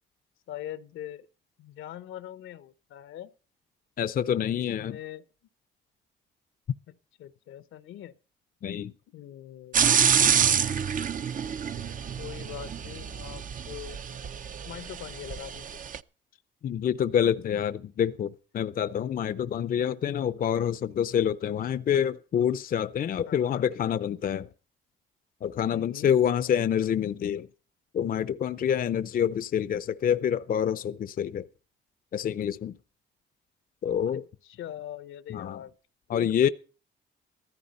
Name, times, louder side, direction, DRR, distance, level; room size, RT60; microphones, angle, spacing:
voice 1, 0.5-1.3 1.6-3.3 4.3-4.5 4.8-5.2 6.9-8.2 9.1-9.8 10.9-11.0 12.2-14.0 14.7-15.8 23.3-23.7 25.7-26.1 34.1-35.7 36.1-36.5, left 11 dB, 80° left, 0.9 m, -42 dB
voice 2, 4.0-5.0 8.6-8.9 16.6-24.5 25.4-27.5 27.9-31.5 32.1-32.8 33.8-34.2 35.3-35.6 36.1-36.5, left 9 dB, 45° left, 0.6 m, -27 dB
sound 1, 9.7-16.0, right 7 dB, 40° right, 0.6 m, -27 dB
15.0 x 14.0 x 4.1 m
cardioid pair, 90°, 20 cm